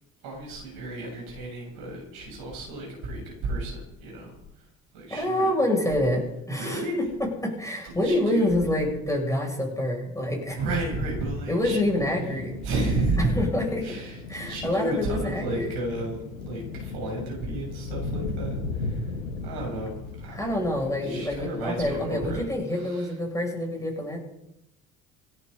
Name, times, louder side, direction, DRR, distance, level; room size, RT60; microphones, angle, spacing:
voice 1, 0.2-4.6 4.9-5.5 6.6-7.0 7.8-8.5 10.5-11.8 12.6-13.3 13.8-19.2 19.4-23.1, right 2 dB, 60° right, -1 dB, 7.0 m, -32 dB
voice 2, 5.1-7.0 7.4-10.6 11.5-12.5 13.4-13.8 14.3-15.7 20.3-24.2, left 1 dB, 10° left, 0 dB, 7.6 m, -27 dB
sound 1, 11.6-22.1, left 3 dB, 80° left, 1.3 m, -36 dB
27.5 x 11.0 x 4.3 m, 0.83 s
figure-of-eight pair, 50°, 40 cm